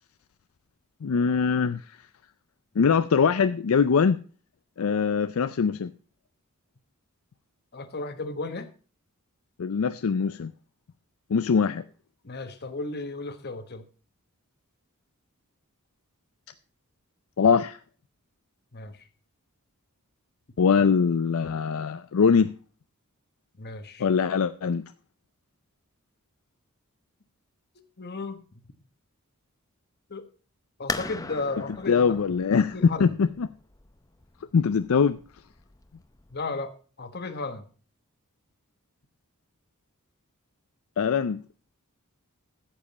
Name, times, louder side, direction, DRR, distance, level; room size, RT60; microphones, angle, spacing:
voice 1, 1.0-2.0 2.8-4.2 4.8-5.9 9.6-10.5 11.3-11.8 17.4-17.8 20.6-22.5 24.0-24.9 31.9-33.5 34.5-35.2 41.0-41.4, left 6 dB, 70° left, 12 dB, 0.4 m, -22 dB
voice 2, 7.7-8.7 12.2-13.8 18.7-19.0 23.6-24.1 28.0-28.4 30.1-30.2 30.8-32.2 32.7-33.1 36.3-36.7 37.0-37.7, left 3 dB, 50° left, 9 dB, 1.2 m, -34 dB
sound 1, 30.9-36.4, left 3 dB, 15° left, 0.6 m, -39 dB
13.5 x 7.5 x 4.1 m, 0.39 s
head